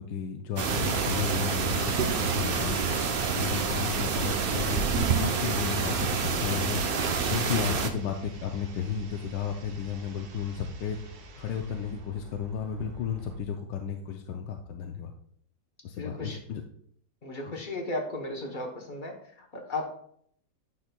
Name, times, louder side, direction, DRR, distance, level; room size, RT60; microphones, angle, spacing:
voice 1, 0.0-2.8 3.3-6.8 7.3-11.0 11.4-15.1 15.8-16.6 17.5-17.6, left 7 dB, 85° left, 3 dB, 1.3 m, -33 dB
sound 1, 0.6-7.9, right 5 dB, 80° right, 0.5 m, -27 dB
sound 2, 4.2-13.4, right 2 dB, 65° right, 1.4 m, -47 dB
voice 2, 16.0-16.4 17.2-19.9, left 2 dB, 40° left, 2 dB, 0.8 m, -35 dB
9.9 x 5.9 x 2.2 m, 0.66 s
omnidirectional pair, 1.9 m